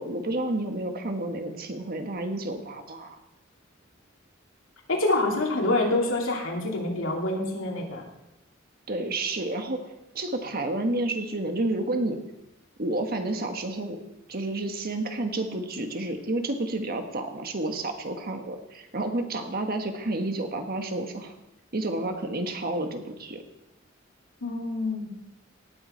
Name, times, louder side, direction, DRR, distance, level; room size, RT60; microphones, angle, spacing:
voice 1, 0.0-3.2 8.9-12.2 12.8-14.0 14.3-21.3 21.7-23.4, right 2 dB, 50° right, 5 dB, 1.4 m, -30 dB
voice 2, 4.9-8.0 24.4-25.1, left 2 dB, 80° left, -1 dB, 2.8 m, -26 dB
18.0 x 7.9 x 4.5 m, 0.89 s
head